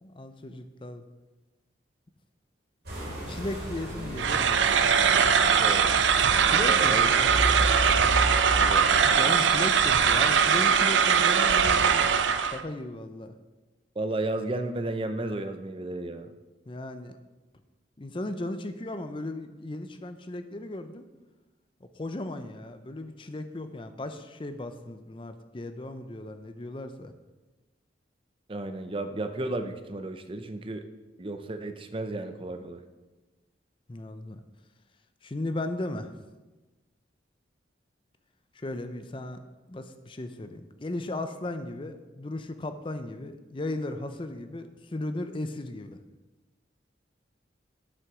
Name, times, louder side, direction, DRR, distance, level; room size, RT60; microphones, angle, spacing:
voice 1, 0.0-1.0 3.3-4.7 6.4-7.3 9.0-13.3 16.7-17.2 18.0-21.0 21.9-27.1 33.9-34.4 35.2-36.1 38.5-39.4 39.7-46.0, left 1 dB, 25° left, 9 dB, 0.5 m, -36 dB
sound 1, 2.8-9.0, equal, 55° right, 3.1 m, -33 dB
sound 2, 4.2-12.6, right 7 dB, 75° right, 0.6 m, -21 dB
voice 2, 5.6-6.0 6.5-7.1 7.6-7.7 8.5-8.9 14.0-16.3 28.5-30.9 31.2-32.8, right 2 dB, 30° right, 8 dB, 0.5 m, -33 dB
7.7 x 6.4 x 6.0 m, 1.2 s
head